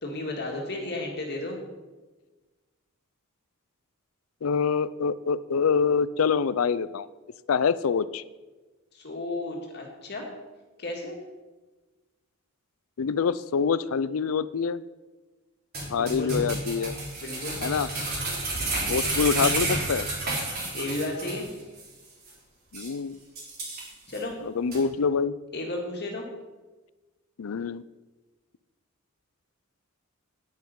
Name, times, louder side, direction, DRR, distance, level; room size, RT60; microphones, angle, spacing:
voice 1, 0.0-1.6 8.9-10.3 10.8-11.2 15.9-16.3 17.2-17.6 20.7-21.5 24.1-24.4 25.5-26.3, left 2 dB, 50° left, 0 dB, 2.0 m, -33 dB
voice 2, 4.4-7.1 7.5-8.2 13.0-14.8 15.9-17.0 17.6-17.9 18.9-20.1 22.7-23.2 24.4-25.3 27.4-27.8, left 6 dB, 70° left, 16 dB, 0.5 m, -25 dB
sound 1, 15.7-21.5 21.8-21.9 22.3-22.4 22.7-22.9 23.4-24.2 24.7-24.8, right 2 dB, 45° right, 3.8 m, -30 dB
10.5 x 9.5 x 5.3 m, 1.2 s
head